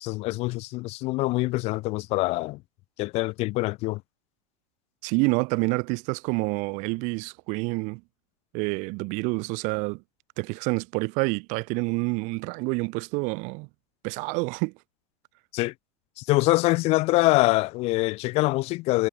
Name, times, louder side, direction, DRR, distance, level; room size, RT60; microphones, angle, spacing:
voice 1, 0.0-2.6 3.0-4.0 15.5-15.7 16.2-19.1, left 21 dB, 40° left, 0.4 m, -24 dB
voice 2, 5.0-8.0 8.5-10.0 10.4-13.7 14.0-14.7, right 29 dB, 50° right, 0.6 m, -28 dB
supercardioid pair, 150°, 16 cm